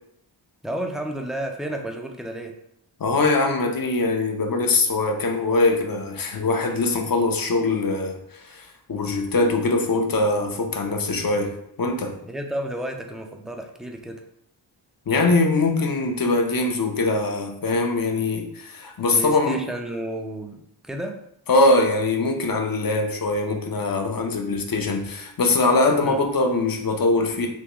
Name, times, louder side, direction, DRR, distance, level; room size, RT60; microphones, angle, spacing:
voice 1, 0.6-2.5 12.2-14.2 19.0-21.2 26.0-26.2, right 1 dB, ahead, 3 dB, 0.4 m, -32 dB
voice 2, 3.0-12.2 15.1-19.6 21.5-27.5, left 2 dB, 50° left, 3 dB, 0.7 m, -22 dB
3.6 x 2.9 x 2.9 m, 0.75 s
wide cardioid pair, 70°, 46 cm